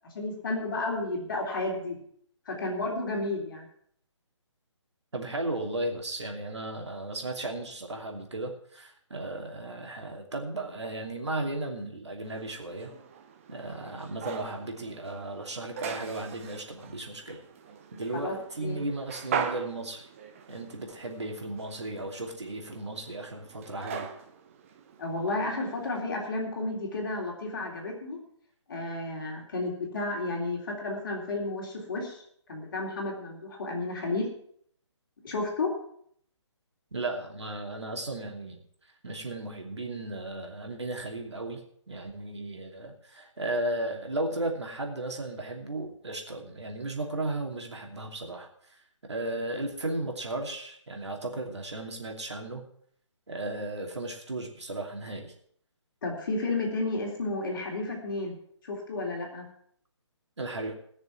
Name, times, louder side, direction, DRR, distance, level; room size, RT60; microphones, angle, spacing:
voice 1, 0.0-2.0 2.5-3.7 18.1-18.8 25.0-28.2 28.7-32.2 32.5-34.3 35.2-35.7 56.0-58.4 58.6-59.4, left 2 dB, 45° left, 0 dB, 3.6 m, -32 dB
voice 2, 5.1-12.9 13.5-17.4 17.9-20.1 20.5-24.1 36.9-38.6 39.0-48.8 49.1-52.6 53.3-55.3 60.4-60.7, right 2 dB, 65° right, 2 dB, 2.8 m, -35 dB
sound 1, 12.2-26.0, right 6 dB, 25° right, 0.9 m, -41 dB
19.5 x 6.7 x 6.0 m, 0.64 s
figure-of-eight pair, 140°, 16 cm